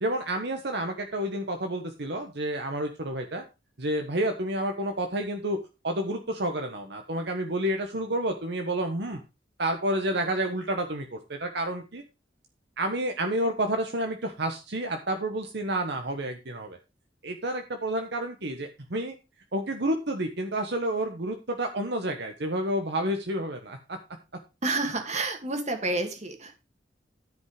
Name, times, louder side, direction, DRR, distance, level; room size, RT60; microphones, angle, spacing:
voice 1, 0.0-3.4 3.8-5.6 5.8-9.2 9.6-12.0 12.8-16.8 17.2-19.1 19.5-24.0, right 1 dB, 65° right, 4 dB, 1.4 m, -30 dB
voice 2, 24.6-26.6, right 2 dB, 40° right, 5 dB, 2.5 m, -29 dB
13.5 x 5.4 x 5.0 m, 0.28 s
head